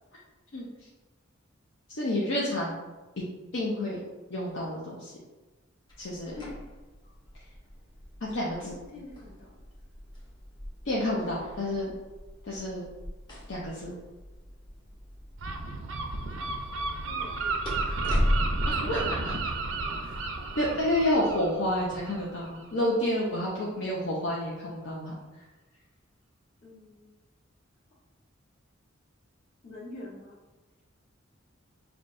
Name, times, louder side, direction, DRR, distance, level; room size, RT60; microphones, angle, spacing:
voice 1, 1.9-2.8 3.5-4.0 4.3-5.1 6.0-6.3 8.2-8.8 10.9-11.9 12.5-12.8 13.5-13.9 18.7-19.4 20.6-25.1, left 1 dB, 65° left, -5 dB, 0.6 m, -29 dB
sound 1, 5.9-19.8, equal, 20° left, 0.9 m, -37 dB
voice 2, 8.6-9.6 17.0-18.3 20.0-20.3 26.6-27.2 29.6-30.4, left 2 dB, 45° left, -7 dB, 1.4 m, -46 dB
Gull seagull, 15.4-22.9, right 3 dB, 65° right, 0.4 m, -33 dB
5.6 x 2.3 x 2.6 m, 1.2 s
head